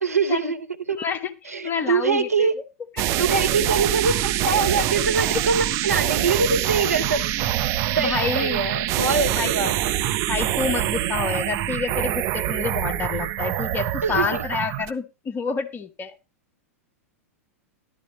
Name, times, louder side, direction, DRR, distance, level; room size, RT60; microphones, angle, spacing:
voice 1, 0.0-1.0 1.5-2.5 3.2-7.4 8.0-9.7 14.0-14.4, right 4 dB, 85° right, 6 dB, 1.1 m, -24 dB
voice 2, 1.0-2.5 3.0-3.1 5.3-5.4 8.0-8.6 9.3-9.5 10.3-16.1, left 5 dB, 25° left, 7 dB, 1.2 m, -28 dB
sound 1, 3.0-14.9, right 13 dB, 40° right, 0.9 m, -25 dB
13.0 x 12.0 x 3.1 m, 0.25 s
figure-of-eight pair, 95°, 8 cm